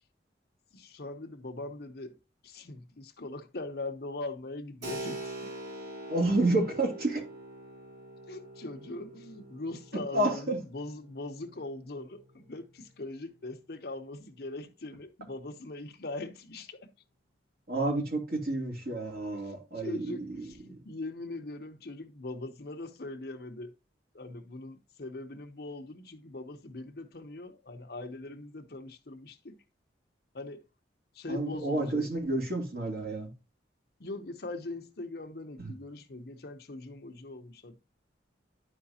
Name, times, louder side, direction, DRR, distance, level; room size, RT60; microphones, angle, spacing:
voice 1, 0.7-2.2 2.4-5.5 8.3-16.9 19.3-23.7 24.1-29.6 30.3-30.6 31.1-32.1 34.0-37.8, left 2 dB, 55° left, 0.8 m, -41 dB
Keyboard (musical), 4.8-13.2, right 2 dB, 75° right, 4.2 m, -44 dB
voice 2, 6.1-7.2 10.1-10.6 17.7-20.8 31.3-33.3 35.6-35.7, right 2 dB, 55° right, 2.5 m, -30 dB
11.0 x 4.8 x 2.8 m
head